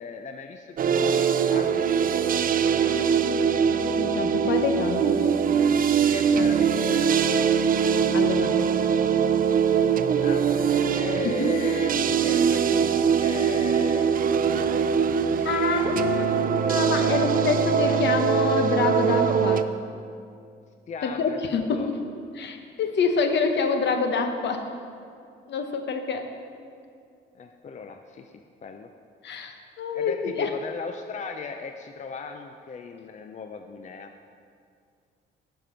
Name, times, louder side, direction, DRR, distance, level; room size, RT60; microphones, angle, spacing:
voice 1, 0.0-1.8 6.0-7.6 10.2-16.4 17.0-18.1 20.9-21.9 27.3-28.3 28.6-28.9 29.9-34.1, left 5 dB, 35° left, 6 dB, 0.5 m, -38 dB
sound 1, 0.8-19.6, right 7 dB, 45° right, 0.4 m, -22 dB
voice 2, 2.8-5.2 8.1-8.7 11.2-11.5 15.4-19.7 21.0-21.9 22.3-24.7 25.5-26.3 29.2-30.5, left 5 dB, 60° left, 6 dB, 1.0 m, -27 dB
11.0 x 5.4 x 5.7 m, 2.3 s
cardioid pair, 90°, 20 cm